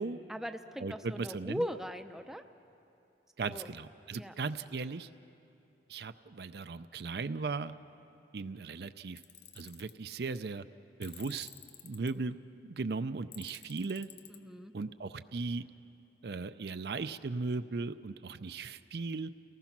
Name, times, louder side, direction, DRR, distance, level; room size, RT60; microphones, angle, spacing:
voice 1, 0.3-2.4 3.4-3.7 4.1-4.3 14.3-14.7, equal, ahead, 7 dB, 0.5 m, -39 dB
voice 2, 0.8-1.6 3.4-5.1 5.9-7.7 8.3-9.2 9.6-10.6 11.0-11.5 11.8-12.4 12.6-14.1 14.7-15.6 16.2-19.3, right 4 dB, 60° right, 11 dB, 0.5 m, -37 dB
Tools, 9.2-9.9 11.0-12.1 13.3-14.4, left 10 dB, 70° left, 0.8 m, -51 dB
29.0 x 19.0 x 6.0 m, 2.6 s
head